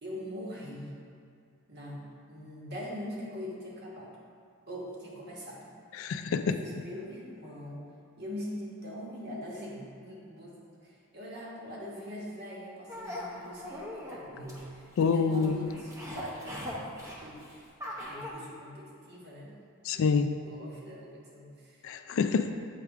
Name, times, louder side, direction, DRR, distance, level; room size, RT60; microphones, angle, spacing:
voice 1, 0.0-1.0 1.7-2.0 2.3-4.1 4.7-5.7 6.4-7.8 8.2-17.4 17.8-19.6 19.9-21.9, equal, 45° right, -4 dB, 1.3 m, -42 dB
voice 2, 6.0-6.6 15.0-15.7 19.8-20.3 21.8-22.5, left 5 dB, 60° left, 9 dB, 0.3 m, -27 dB
sound 1, 12.9-18.3, left 1 dB, 15° right, 0.8 m, -41 dB
7.4 x 3.4 x 4.7 m, 2.3 s
head